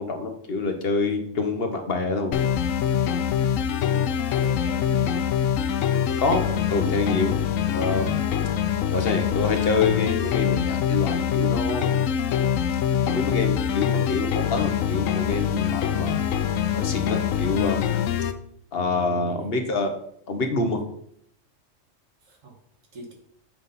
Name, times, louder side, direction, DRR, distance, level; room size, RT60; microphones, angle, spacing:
voice 1, 0.0-2.4 6.2-7.4 7.7-8.1 8.9-11.9 13.1-16.2 16.7-17.9 18.7-19.9 20.3-20.8, left 3 dB, 55° left, 6 dB, 1.1 m, -26 dB
sound 1, 2.3-18.3, left 8 dB, 90° left, 1.0 m, -24 dB
voice 2, 4.0-5.2 17.9-18.0 19.1-19.5 22.2-22.6 22.9-23.1, right 2 dB, 90° right, 1 dB, 2.0 m, -43 dB
7.4 x 4.0 x 5.5 m, 0.69 s
omnidirectional pair, 1.3 m